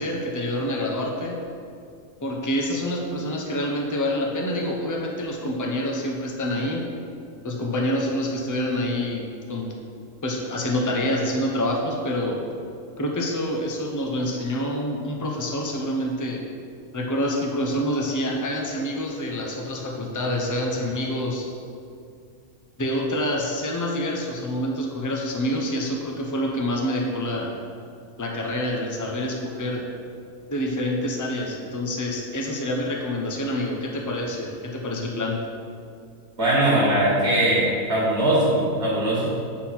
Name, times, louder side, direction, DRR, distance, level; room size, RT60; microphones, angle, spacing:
voice 1, 0.0-1.4 2.2-6.9 7.4-9.2 9.5-9.7 10.2-12.4 13.0-16.4 16.9-21.5 22.8-27.5 28.2-29.8 30.5-35.4, left 1 dB, 15° left, 0 dB, 0.7 m, -27 dB
voice 2, 36.4-39.3, right 1 dB, 50° right, -6 dB, 1.9 m, -21 dB
7.9 x 4.3 x 5.8 m, 2.4 s
omnidirectional pair, 1.4 m